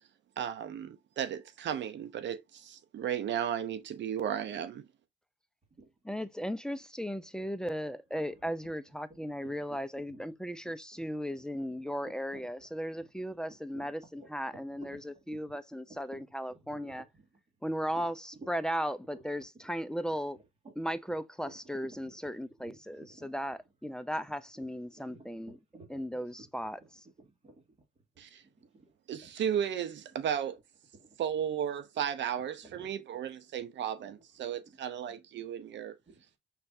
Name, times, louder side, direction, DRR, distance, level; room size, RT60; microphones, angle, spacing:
voice 1, 0.4-4.8 28.2-28.4 29.1-30.6 31.2-35.9, right 9 dB, 65° right, 0.7 m, -34 dB
voice 2, 6.0-17.0 17.6-20.4 20.8-25.6 25.9-26.8, equal, 5° left, 0.5 m, -36 dB
voice 3, 12.0-12.5 13.7-13.9 14.1-14.3 14.8-15.1 16.1-17.3 18.3-18.5 19.1-19.2 20.6-20.7 22.0-22.4 22.6-23.3 24.2-24.3 25.1-26.0 26.4-26.5 27.4-27.6 28.6-28.9 29.2-29.3 31.0-31.1 32.6-32.9 34.7-34.8 36.1-36.4, right 2 dB, 35° right, 2.9 m, -53 dB
5.7 x 3.4 x 2.6 m
cardioid pair, 90°, 20 cm